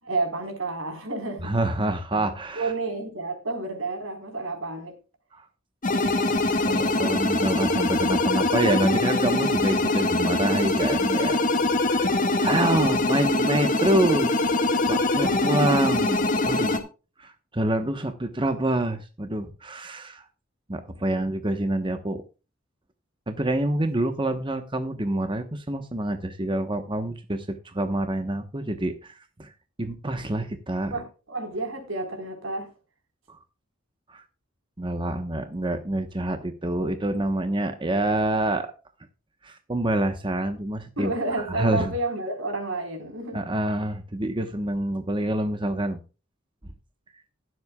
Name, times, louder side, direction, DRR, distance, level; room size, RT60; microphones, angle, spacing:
voice 1, 0.0-1.5 2.1-5.0 21.1-21.3 30.9-32.7 41.0-43.4, right 2 dB, 80° right, 4.3 m, -30 dB
voice 2, 1.4-2.7 5.3-5.4 6.1-11.4 11.8-12.1 12.4-14.3 14.9-16.8 17.2-20.2 20.7-22.2 23.3-29.5 29.8-30.9 33.3-33.4 34.1-34.2 34.8-38.7 39.4-41.9 43.3-46.0, right 1 dB, 25° right, 1.1 m, -27 dB
sound 1, 5.8-16.8, left 2 dB, 40° left, 1.8 m, -23 dB
20.5 x 7.9 x 2.3 m
head